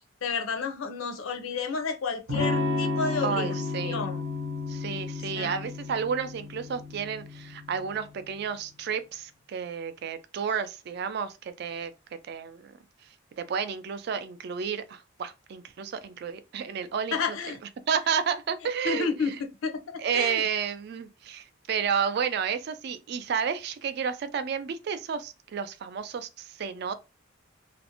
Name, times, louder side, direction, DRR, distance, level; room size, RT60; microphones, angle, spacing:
voice 1, 0.2-4.2 5.3-5.6 17.1-17.6 18.8-19.3 19.6-20.4, left 5 dB, 80° left, 0.5 m, -31 dB
Electric guitar / Strum, 2.3-8.0, left 3 dB, 90° right, 0.8 m, -32 dB
voice 2, 3.2-4.1 4.7-11.9 12.3-12.7 13.4-17.4 17.9-19.4 20.0-26.9, right 7 dB, 50° right, 0.3 m, -31 dB
2.5 x 2.0 x 2.7 m
head